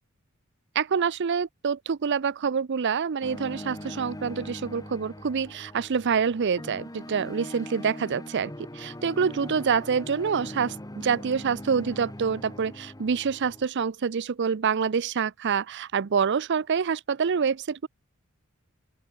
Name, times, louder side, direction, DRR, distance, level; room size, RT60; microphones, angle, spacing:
voice 1, 0.7-17.9, right 6 dB, 55° right, 0.5 m, -26 dB
sound 1, 3.2-13.7, left 1 dB, 15° left, 2.7 m, -41 dB
open air
head